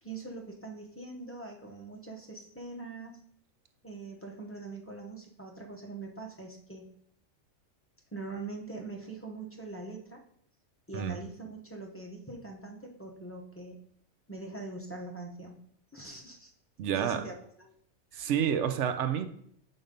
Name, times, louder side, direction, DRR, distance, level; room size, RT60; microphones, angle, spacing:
voice 1, 0.0-3.2 3.8-6.9 8.1-10.2 10.9-13.8 14.3-15.6 15.9-16.5 16.9-17.7 18.1-18.3, right 3 dB, 15° left, -1 dB, 0.6 m, -43 dB
voice 2, 16.8-17.3 18.1-19.3, right 8 dB, 65° right, 9 dB, 0.8 m, -29 dB
5.2 x 4.0 x 5.1 m, 0.66 s
omnidirectional pair, 1.5 m